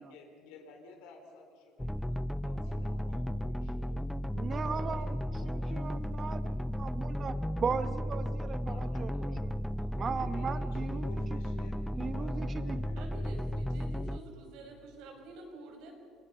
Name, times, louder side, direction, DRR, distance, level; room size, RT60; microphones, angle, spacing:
voice 1, 0.0-4.1 4.6-6.7 8.6-9.5 9.8-13.0, left 3 dB, 85° left, 4 dB, 4.2 m, -53 dB
sound 1, 1.8-14.2, equal, 5° left, 0.4 m, -34 dB
voice 2, 4.3-5.2 5.4-6.5 6.8-7.3 7.6-9.3 10.0-11.2 12.0-12.8, right 6 dB, 35° right, 12 dB, 1.2 m, -37 dB
voice 3, 13.0-15.9, right 2 dB, 80° right, 2 dB, 5.5 m, -48 dB
28.0 x 21.0 x 5.6 m, 2.4 s
cardioid pair, 120°, 0 cm